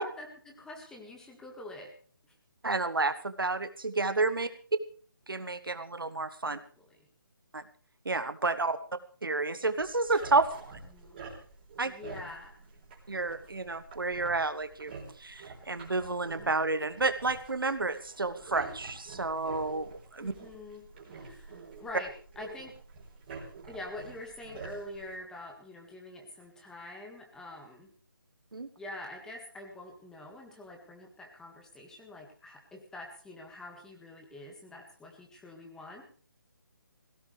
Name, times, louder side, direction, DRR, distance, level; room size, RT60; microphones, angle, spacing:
voice 1, 0.0-1.9 4.4-4.5 6.5-7.1 10.9-11.2 11.8-12.5 20.2-22.7 23.6-27.9 28.8-36.0, left 2 dB, 5° left, 1 dB, 1.8 m, -45 dB
voice 2, 2.6-4.5 5.3-6.6 7.5-7.6 8.0-8.8 9.2-10.7 11.8-11.9 13.1-14.9 15.2-20.3 28.5-28.7, right 3 dB, 75° right, 11 dB, 1.2 m, -30 dB
sound 1, 9.8-25.2, right 4 dB, 30° right, 4.3 m, -48 dB
18.5 x 16.5 x 3.3 m, 0.43 s
figure-of-eight pair, 150°, 12 cm